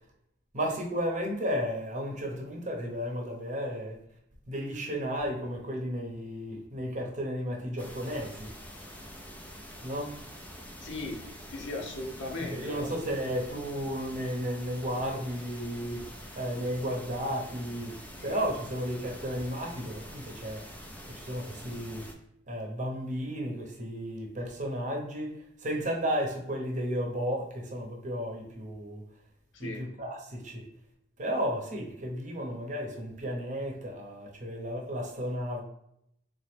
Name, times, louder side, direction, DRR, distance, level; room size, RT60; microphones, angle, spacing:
voice 1, 0.5-4.0 4.5-8.5 9.8-10.2 12.4-17.9 18.2-20.8 21.1-22.1 22.5-29.0 29.6-30.6 31.2-35.6, equal, 40° right, 0 dB, 0.9 m, -33 dB
sound 1, 7.8-22.1, equal, 10° left, 0.5 m, -46 dB
voice 2, 10.8-11.2 11.5-12.9 18.2-18.4 29.5-29.9, left 2 dB, 65° left, 1 dB, 0.8 m, -37 dB
3.8 x 3.0 x 3.3 m, 0.75 s
head